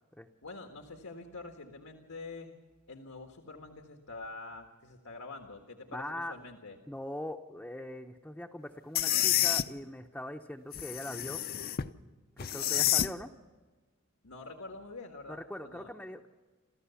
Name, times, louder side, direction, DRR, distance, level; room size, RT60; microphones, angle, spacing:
voice 1, 0.4-2.5 2.9-6.8 14.2-15.9, left 3 dB, 90° left, 4 dB, 1.7 m, -46 dB
voice 2, 5.9-6.4 6.9-11.4 12.4-13.3 15.3-16.3, left 1 dB, 5° left, 1 dB, 0.6 m, -41 dB
sound 1, 8.9-9.6 10.7-11.9 12.4-13.1, left 12 dB, 45° left, 0.6 m, -29 dB
27.5 x 14.5 x 7.0 m, 1.4 s
head